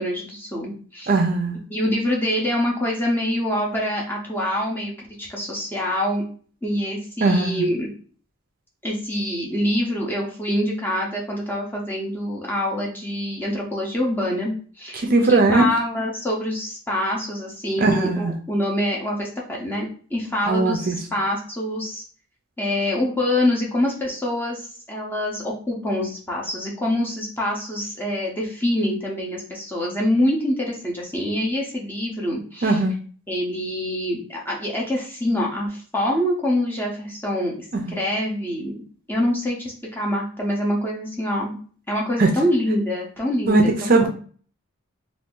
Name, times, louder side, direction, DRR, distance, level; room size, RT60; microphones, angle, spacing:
voice 1, 0.0-1.1 1.7-4.9 5.2-6.2 6.6-7.9 8.8-22.0 22.6-32.8 33.3-38.7 39.1-41.6 41.9-44.1, left 1 dB, 10° left, -3 dB, 0.7 m, -25 dB
voice 2, 1.1-1.6 7.2-7.7 14.9-15.6 17.8-18.3 20.5-21.0 32.6-32.9 37.9-38.0 42.2-42.3 43.5-44.1, right 3 dB, 40° right, 3 dB, 0.4 m, -19 dB
2.6 x 2.5 x 3.6 m, 0.43 s
head